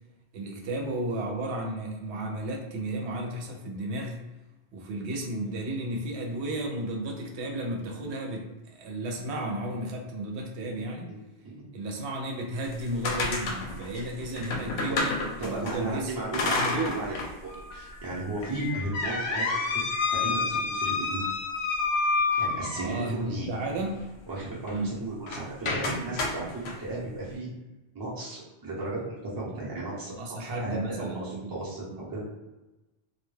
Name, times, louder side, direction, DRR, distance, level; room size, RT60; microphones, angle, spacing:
voice 1, 0.3-4.2 4.7-11.1 11.7-15.2 15.4-16.1 16.6-17.0 22.7-24.0 24.7-25.0 30.2-31.5 31.9-32.0, right 1 dB, 90° right, 0 dB, 0.9 m, -33 dB
sound 1, 12.6-15.7 16.3-17.3 17.7-17.8 18.4-23.1 25.2-25.4 25.8-26.8, left 3 dB, 75° left, 0.8 m, -29 dB
voice 2, 15.4-21.3 22.4-23.5 24.3-27.5 27.9-32.3, right 2 dB, 25° right, -5 dB, 0.6 m, -35 dB
Slam, 17.5-26.8, left 3 dB, 45° left, 0.4 m, -43 dB
2.2 x 2.2 x 3.1 m, 1.1 s
omnidirectional pair, 1.1 m